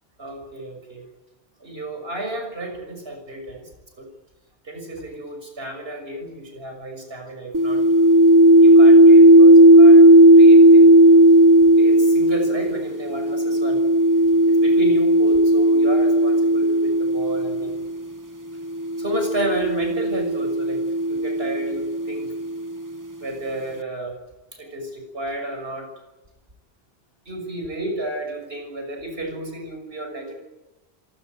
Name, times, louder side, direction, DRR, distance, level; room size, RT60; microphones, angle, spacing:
voice 1, 0.2-1.0 1.6-3.7 4.0-4.1 4.6-7.8 8.6-11.4 11.8-13.8 14.5-17.8 19.0-22.3 23.2-24.1 24.5-25.9 27.3-30.4, right 1 dB, 70° right, 5 dB, 6.5 m, -32 dB
sound 1, 7.5-17.9 18.8-22.6, right 1 dB, 20° right, 0.8 m, -14 dB
27.0 x 18.0 x 9.4 m, 1.0 s
omnidirectional pair, 1.1 m